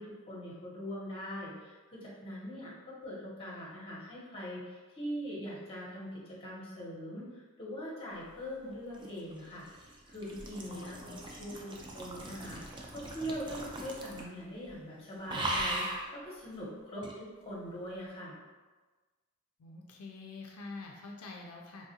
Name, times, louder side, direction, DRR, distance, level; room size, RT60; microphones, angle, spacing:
voice 1, 0.0-9.7 10.1-12.6 12.9-18.4, equal, 25° left, -6 dB, 0.9 m, -42 dB
sound 1, 8.7-14.4 14.7-14.9 15.3-16.1 17.0-17.2, right 1 dB, 20° right, 0.3 m, -39 dB
voice 2, 10.7-11.9 19.6-21.9, left 3 dB, 85° left, 0 dB, 0.4 m, -47 dB
3.3 x 2.3 x 2.7 m, 1.3 s
head